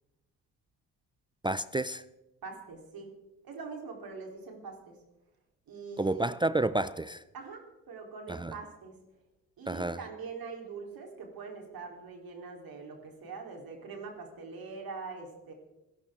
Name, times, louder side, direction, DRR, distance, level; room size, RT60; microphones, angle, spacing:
voice 1, 1.4-2.0 6.0-7.2 8.3-8.5 9.7-10.0, right 2 dB, 10° right, 0.6 m, -30 dB
voice 2, 2.4-3.1 3.4-5.0 5.7-6.3 7.3-8.9 9.6-15.5, right 4 dB, 65° right, 4.1 m, -43 dB
27.0 x 12.0 x 3.9 m
hypercardioid pair, 50°, 38 cm